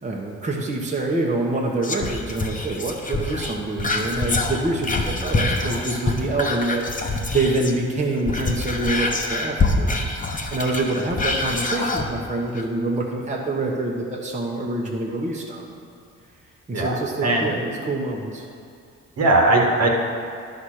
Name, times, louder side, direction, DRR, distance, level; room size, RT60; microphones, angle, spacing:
voice 1, 0.0-6.9 7.3-10.0 10.5-15.6 16.7-18.4, right 2 dB, 25° right, -2 dB, 1.2 m, -26 dB
Whispering, 1.8-7.8 8.1-12.1 12.5-12.6, left 2 dB, 25° left, 1.0 m, -25 dB
voice 2, 16.7-17.5 19.2-19.9, right 2 dB, 55° right, 0 dB, 1.6 m, -19 dB
11.0 x 4.3 x 6.4 m, 2.5 s
cardioid pair, 90°, 30 cm